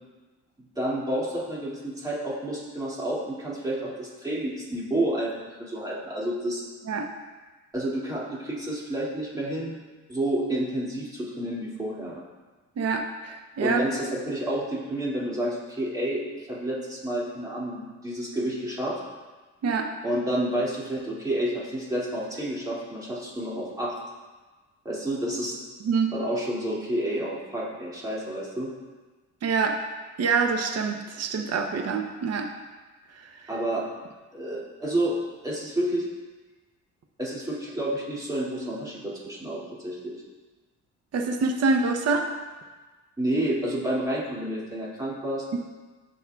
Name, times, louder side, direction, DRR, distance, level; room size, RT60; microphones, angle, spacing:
voice 1, 0.8-6.6 7.7-9.8 10.1-12.2 13.6-19.0 20.0-24.0 24.8-25.6 26.1-28.7 33.5-33.8 34.3-35.2 35.4-36.1 37.2-40.1 43.2-45.4, right 1 dB, 10° right, -6 dB, 2.3 m, -30 dB
voice 2, 12.8-13.8 19.6-19.9 25.8-26.1 29.4-29.8 30.2-32.5 41.1-42.3, right 4 dB, 55° right, 4 dB, 0.8 m, -25 dB
14.0 x 5.4 x 2.3 m, 1.3 s
cardioid pair, 90°, 30 cm